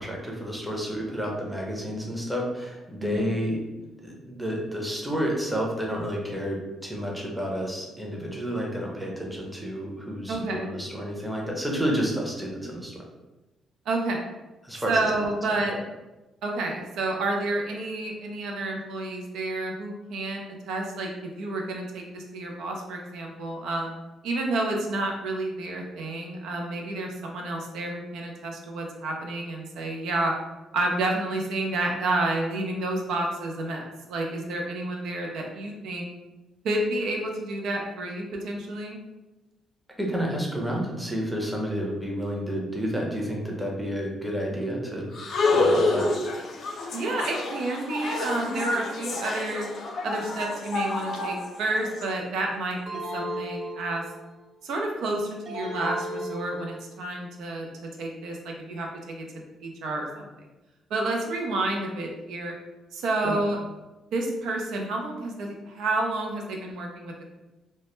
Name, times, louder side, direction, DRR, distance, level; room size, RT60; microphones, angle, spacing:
voice 1, 0.0-3.6 4.0-13.0 14.6-15.0 40.0-45.1 45.4-46.1 63.2-63.3, equal, 5° right, -2 dB, 0.6 m, -30 dB
voice 2, 10.3-10.6 13.9-14.2 14.9-15.7 16.4-21.1 21.3-23.9 24.2-30.3 30.7-36.1 36.6-39.0 46.9-49.7 50.0-54.0 54.6-57.7 58.0-59.3 59.6-60.3 60.9-62.5 62.9-63.6 64.1-67.3, right 2 dB, 80° right, 1 dB, 0.4 m, -30 dB
sound 1, 45.1-52.0, left 2 dB, 60° left, 0.4 m, -28 dB
sound 2, 52.9-54.4 55.5-57.0, equal, 55° right, 0.8 m, -35 dB
2.1 x 2.0 x 3.0 m, 1.1 s
cardioid pair, 90°, 0 cm